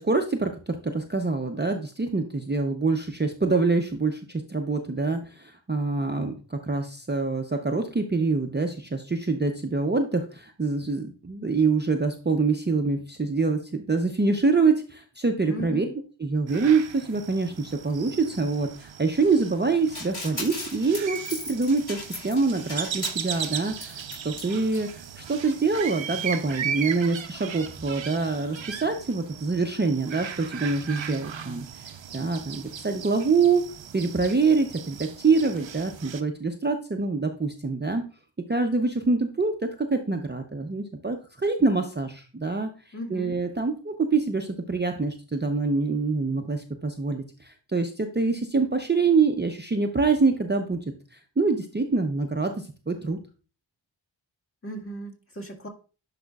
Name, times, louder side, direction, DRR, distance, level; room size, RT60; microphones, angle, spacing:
voice 1, 0.0-15.8 16.2-33.6 33.9-38.0 38.5-42.7 43.1-50.8 51.1-53.2, right 4 dB, 25° right, 4 dB, 0.6 m, -25 dB
voice 2, 15.5-15.9 42.9-43.4 54.6-55.7, equal, 30° left, -1 dB, 1.9 m, -36 dB
sound 1, 16.5-36.2, right 8 dB, 75° right, 0.7 m, -37 dB
sound 2, 19.9-24.5 24.7-24.8 25.0-25.1, left 2 dB, 55° left, 3.5 m, -37 dB
10.5 x 4.9 x 2.3 m, 0.36 s
wide cardioid pair, 70°, 46 cm